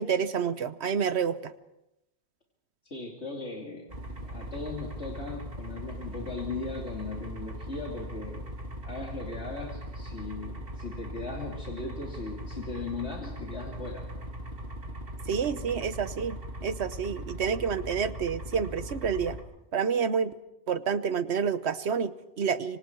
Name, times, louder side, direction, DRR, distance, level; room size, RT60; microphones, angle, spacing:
voice 1, 0.0-1.5 15.3-16.4 16.6-19.4 19.7-20.3 20.7-22.8, right 6 dB, 70° right, 13 dB, 1.3 m, -29 dB
voice 2, 2.8-8.5 8.8-14.0, left 3 dB, 75° left, -1 dB, 3.1 m, -38 dB
sound 1, 3.9-19.4, equal, 55° right, 3.3 m, -39 dB
26.5 x 24.5 x 4.6 m, 0.89 s
omnidirectional pair, 1.2 m